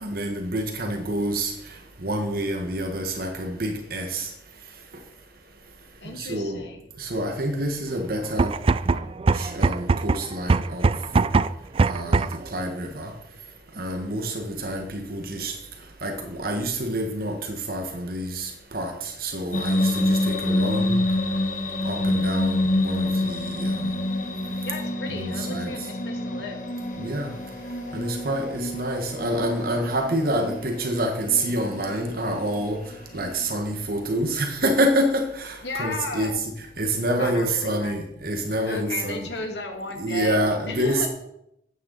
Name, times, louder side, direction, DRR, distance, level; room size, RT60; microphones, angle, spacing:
voice 1, 0.0-1.5 2.0-4.3 6.2-6.6 7.0-8.5 9.3-10.9 11.9-12.3 12.5-13.1 13.8-15.5 16.0-21.0 21.8-23.8 25.1-25.7 27.0-27.3 27.9-32.8 33.1-36.3 36.8-39.3 40.0-41.1, right 1 dB, 55° right, 3 dB, 1.5 m, -27 dB
voice 2, 6.0-6.8 8.9-9.1 24.6-26.6 35.6-36.4 37.2-37.9 38.7-40.4 40.7-41.1, left 2 dB, 75° left, 3 dB, 2.3 m, -34 dB
sound 1, 8.3-12.5, right 4 dB, 30° right, 0.3 m, -22 dB
sound 2, 19.5-33.5, left 1 dB, 45° left, 1.3 m, -27 dB
14.0 x 9.1 x 4.0 m, 0.80 s
head